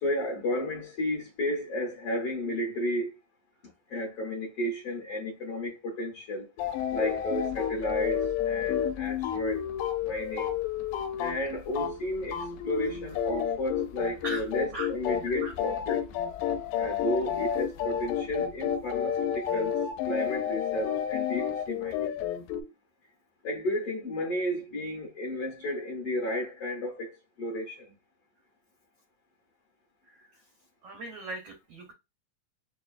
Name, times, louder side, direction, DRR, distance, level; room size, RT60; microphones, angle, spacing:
voice 1, 0.0-3.1 3.9-6.5 6.9-9.7 10.0-10.5 11.2-16.0 16.8-19.7 20.1-22.1 23.4-27.9, left 1 dB, 65° left, 1.5 m, -33 dB
sound 1, 6.6-12.0 12.2-22.6, left 9 dB, 85° left, 2.1 m, -30 dB
voice 2, 30.8-31.9, right 2 dB, 85° right, 1.4 m, -38 dB
6.3 x 2.2 x 2.5 m
omnidirectional pair, 4.0 m